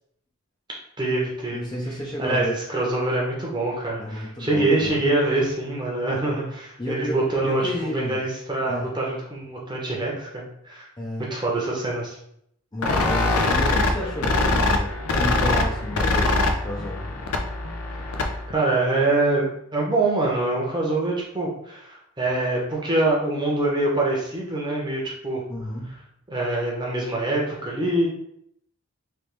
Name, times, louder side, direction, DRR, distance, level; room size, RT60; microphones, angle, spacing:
voice 1, 1.0-1.7 2.2-7.6 7.9-10.9 11.3-12.2 18.5-25.4 26.3-28.1, right 2 dB, 20° right, -4 dB, 0.9 m, -24 dB
voice 2, 1.5-2.6 4.0-4.9 6.8-7.2 7.4-8.2 8.7-8.9 11.0-11.3 12.7-17.3 25.5-25.9, left 1 dB, 20° left, -4 dB, 0.5 m, -31 dB
sound 1, 12.8-18.5, left 2 dB, 85° left, 0.5 m, -23 dB
3.4 x 3.0 x 3.1 m, 0.72 s
head